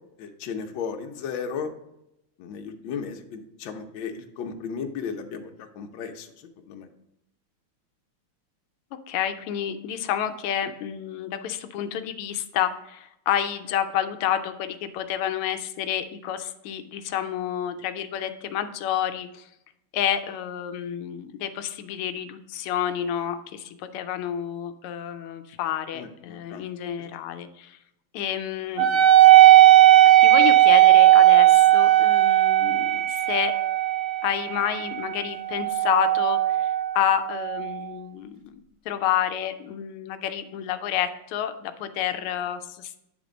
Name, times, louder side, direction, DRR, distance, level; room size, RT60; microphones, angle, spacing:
voice 1, 0.2-1.7 2.4-6.3 6.7-6.9 25.9-26.6, left 6 dB, 70° left, 4 dB, 1.4 m, -35 dB
voice 2, 9.1-19.5 19.9-27.8 28.1-29.0 30.2-33.6 34.2-38.6 38.9-43.1, left 10 dB, 85° left, 8 dB, 1.5 m, -29 dB
Wind instrument woodwind instrument, 28.8-37.7, right 14 dB, 75° right, 0.7 m, -17 dB
9.0 x 3.5 x 5.0 m, 0.84 s
omnidirectional pair, 2.4 m